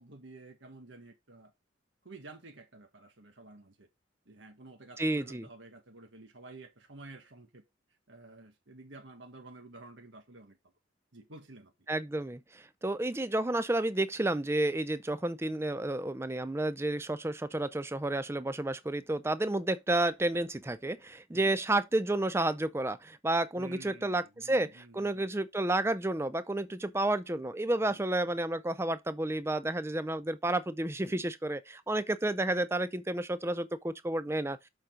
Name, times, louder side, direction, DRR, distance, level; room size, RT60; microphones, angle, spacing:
voice 1, 0.0-1.5 2.0-3.9 4.2-7.6 8.1-10.6 11.1-11.7 21.3-21.6 23.5-25.3 27.8-28.0, right 2 dB, 75° right, 1.5 m, -51 dB
voice 2, 5.0-5.5 11.9-34.6, right 1 dB, 15° right, 0.5 m, -31 dB
7.1 x 5.0 x 3.7 m
head